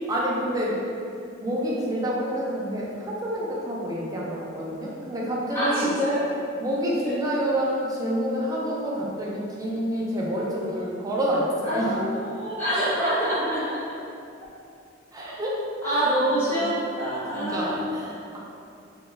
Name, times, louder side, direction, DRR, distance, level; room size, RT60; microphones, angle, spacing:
voice 1, 0.1-0.8 1.4-5.9 6.6-12.1 15.1-16.6 17.3-18.4, equal, 20° right, -5 dB, 0.3 m, -28 dB
voice 2, 5.5-6.3 7.0-7.3 11.6-13.6 15.8-17.9, right 1 dB, 10° left, -13 dB, 0.7 m, -26 dB
2.2 x 2.2 x 3.2 m, 2.6 s
head